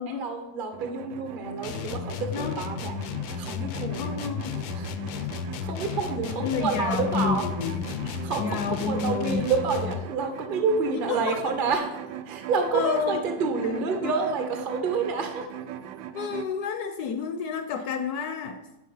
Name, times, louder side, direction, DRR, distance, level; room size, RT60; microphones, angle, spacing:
voice 1, 0.0-2.9 3.3-4.3 4.7-5.3 5.6-7.5 8.1-11.8 12.3-15.5, right 4 dB, 50° right, 5 dB, 0.6 m, -29 dB
sound 1, 0.7-16.5, right 9 dB, 75° right, 1.1 m, -40 dB
sound 2, 1.6-10.1, left 7 dB, 90° left, 1.3 m, -33 dB
voice 2, 4.0-4.6 6.3-8.1 8.4-9.5 11.1-11.4 12.7-13.2 13.5-14.1 16.1-18.7, left 6 dB, 70° left, 8 dB, 0.9 m, -30 dB
10.5 x 3.9 x 5.5 m, 0.94 s
omnidirectional pair, 2.0 m